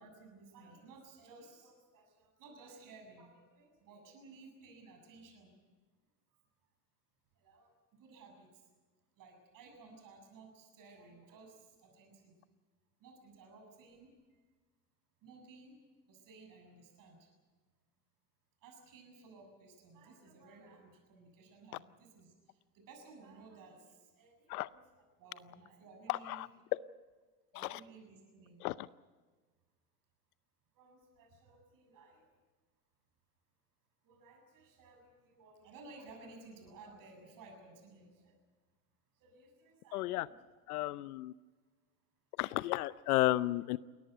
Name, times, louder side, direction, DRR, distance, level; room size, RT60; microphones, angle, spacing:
voice 1, 0.0-5.5 7.4-8.5 9.2-12.4 13.0-14.1 15.2-15.8 16.1-17.3 18.6-22.3 22.7-24.8 25.2-26.5 27.5-28.6 30.7-32.2 34.0-38.3 39.2-40.4, right 3 dB, 45° right, 4 dB, 7.3 m, -57 dB
voice 2, 26.1-26.5 27.5-27.8 28.6-28.9 39.9-40.3 40.7-41.3 42.4-43.8, left 17 dB, 75° left, 17 dB, 0.7 m, -33 dB
21.5 x 18.0 x 9.2 m, 1.4 s
hypercardioid pair, 105°, 46 cm